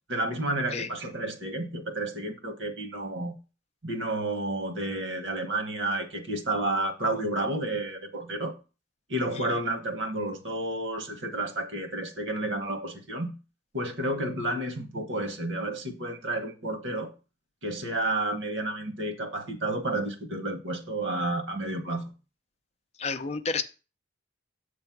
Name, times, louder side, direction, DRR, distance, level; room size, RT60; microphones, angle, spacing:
voice 1, 0.1-3.3 3.8-8.5 9.1-13.3 13.7-17.1 17.6-22.1, right 1 dB, 70° right, 1.3 m, -31 dB
voice 2, 23.0-23.6, left 4 dB, 35° left, 0.5 m, -31 dB
7.9 x 3.3 x 5.8 m
head